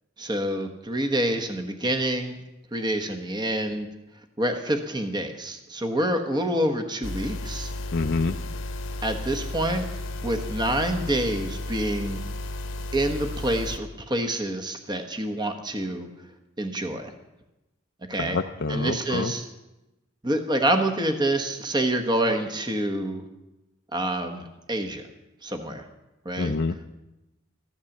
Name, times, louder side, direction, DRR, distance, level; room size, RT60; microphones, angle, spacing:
voice 1, 0.2-2.4 2.7-3.9 4.4-7.7 9.0-9.9 10.2-12.2 12.9-16.1 16.6-17.1 18.1-18.4 18.7-19.5 20.2-23.2 23.9-25.1 25.4-25.8 26.2-26.5, right 1 dB, 20° right, 7 dB, 1.1 m, -27 dB
sound 1, 7.0-13.8, left 2 dB, 85° left, 1.2 m, -33 dB
voice 2, 7.9-8.4 18.2-19.3 26.4-26.9, left 3 dB, 60° left, 5 dB, 0.6 m, -27 dB
14.5 x 11.0 x 7.2 m, 0.98 s
head